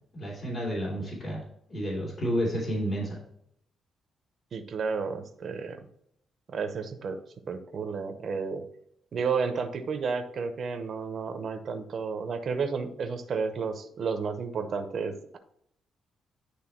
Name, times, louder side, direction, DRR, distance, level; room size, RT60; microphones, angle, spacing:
voice 1, 0.1-1.4 1.7-3.2, equal, 45° left, -5 dB, 2.7 m, -30 dB
voice 2, 4.5-5.8 6.5-7.2 7.5-8.6 9.1-15.4, right 5 dB, 55° right, 6 dB, 0.8 m, -32 dB
9.8 x 3.3 x 4.5 m, 0.71 s
cardioid pair, 110°, 0 cm